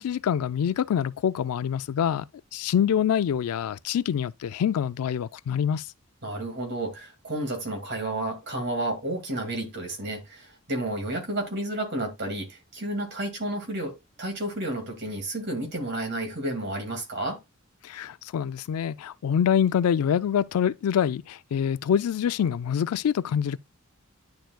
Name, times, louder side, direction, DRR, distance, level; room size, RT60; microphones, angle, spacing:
voice 1, 0.0-2.3 2.5-5.9 17.8-23.6, left 8 dB, 85° left, 0.3 m, -25 dB
voice 2, 6.2-17.4, right 1 dB, 50° right, 2.3 m, -31 dB
10.5 x 4.4 x 2.3 m
head